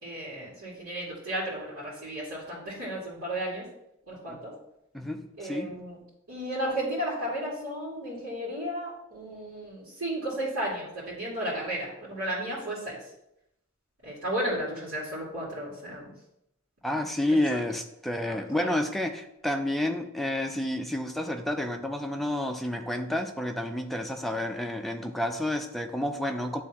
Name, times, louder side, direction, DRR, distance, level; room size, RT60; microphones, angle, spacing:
voice 1, 0.0-3.7 4.1-4.5 5.4-6.0 6.3-13.0 14.0-16.1 18.3-18.7, right 1 dB, 90° right, -8 dB, 2.2 m, -34 dB
voice 2, 4.9-5.9 16.8-26.6, left 1 dB, ahead, 3 dB, 0.4 m, -30 dB
9.5 x 3.4 x 2.9 m, 0.82 s
head